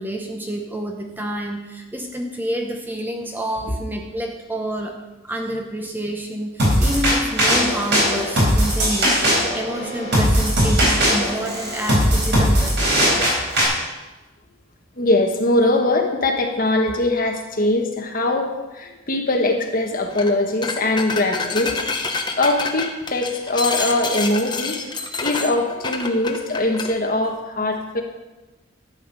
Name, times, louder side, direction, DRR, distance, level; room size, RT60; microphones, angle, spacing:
voice 1, 0.0-13.1, equal, 10° right, 3 dB, 0.9 m, -28 dB
sound 1, 6.6-13.6, equal, 55° right, 4.0 m, -19 dB
voice 2, 15.0-21.8 22.4-24.8 25.2-28.0, left 2 dB, 45° left, 2 dB, 1.5 m, -21 dB
sound 2, 20.1-20.3 20.6-26.9, left 4 dB, 20° left, 0.9 m, -27 dB
12.5 x 8.3 x 5.5 m, 1.1 s
head